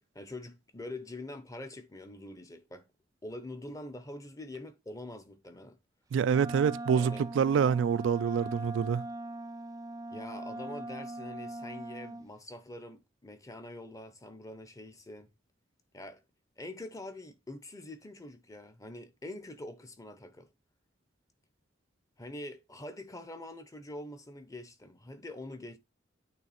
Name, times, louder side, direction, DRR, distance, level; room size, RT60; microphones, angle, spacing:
voice 1, 0.0-2.9 3.2-5.8 6.9-7.2 10.1-15.3 15.9-16.2 16.6-20.5 22.2-25.8, left 1 dB, 20° left, 0.8 m, -45 dB
voice 2, 6.1-9.1, right 7 dB, 80° right, 0.3 m, -26 dB
Wind instrument woodwind instrument, 6.3-12.3, right 1 dB, 20° right, 0.5 m, -40 dB
9.0 x 3.4 x 4.2 m
head